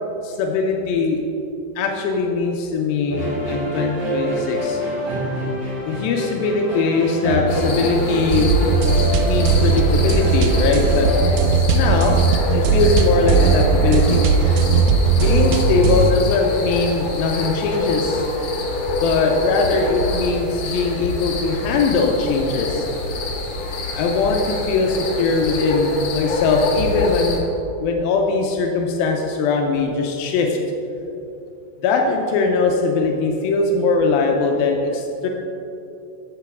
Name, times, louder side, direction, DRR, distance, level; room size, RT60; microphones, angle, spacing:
voice 1, 0.2-1.2 1.8-4.8 5.9-8.5 9.2-11.1 11.7-12.2 12.5-14.2 15.2-18.2 19.0-22.9 24.0-27.4 27.8-30.6 31.8-35.3, left 4 dB, 85° left, 2 dB, 2.4 m, -20 dB
sound 1, 3.1-11.3, equal, 40° right, 2.1 m, -26 dB
sound 2, 7.5-27.4, left 1 dB, 65° left, 1.7 m, -25 dB
sound 3, 8.3-16.1, right 5 dB, 85° right, 2.2 m, -18 dB
9.0 x 7.6 x 3.6 m, 2.8 s
omnidirectional pair, 4.1 m